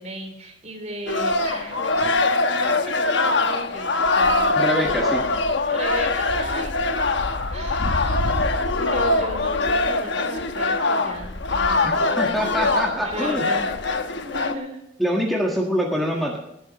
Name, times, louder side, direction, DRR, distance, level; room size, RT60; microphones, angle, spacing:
voice 1, 0.0-5.4 5.7-7.1 7.5-8.3 8.7-12.4 13.0-13.7 14.2-14.8, right 1 dB, 35° right, 4 dB, 3.3 m, -36 dB
sound 1, 1.1-14.5, left 3 dB, 70° left, 1.1 m, -23 dB
voice 2, 4.5-5.2 12.2-13.5 15.0-16.4, equal, ahead, -1 dB, 1.6 m, -24 dB
19.5 x 11.0 x 3.1 m, 0.82 s
head